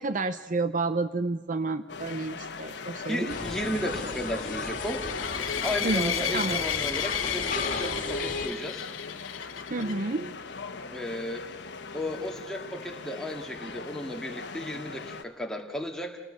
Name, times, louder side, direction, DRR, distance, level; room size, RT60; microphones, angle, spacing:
voice 1, 0.0-3.3 5.8-6.6 9.7-10.3, right 3 dB, 40° right, 11 dB, 0.7 m, -30 dB
sound 1, 1.9-15.2, left 4 dB, 60° left, 1.3 m, -40 dB
voice 2, 3.1-5.1 5.6-8.9 10.7-11.7 11.9-16.2, equal, 5° left, 2 dB, 2.2 m, -34 dB
sound 2, 3.3-8.5, left 3 dB, 40° left, 2.3 m, -35 dB
sound 3, 4.6-9.9, left 9 dB, 75° left, 1.2 m, -33 dB
29.0 x 19.0 x 7.0 m, 1.2 s
head